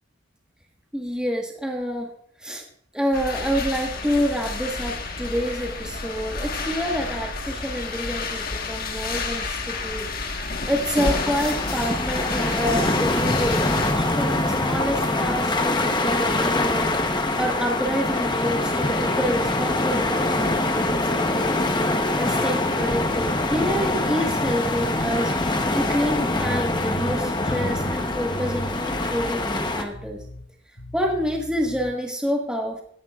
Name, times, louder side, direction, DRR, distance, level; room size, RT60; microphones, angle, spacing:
voice 1, 0.9-2.1 2.4-2.6 2.9-10.1 10.7-16.9 17.4-21.6 22.2-25.3 25.7-30.2 30.9-32.8, equal, 5° right, -1 dB, 1.4 m, -28 dB
sound 1, 3.1-13.9, left 3 dB, 45° left, 1.4 m, -30 dB
sound 2, 11.0-29.8, left 2 dB, 20° left, 0.9 m, -24 dB
sound 3, 26.4-28.8 29.1-29.6 29.9-30.5 30.8-31.9, right 1 dB, 80° left, 2.2 m, -37 dB
17.0 x 11.0 x 2.4 m, 0.65 s
head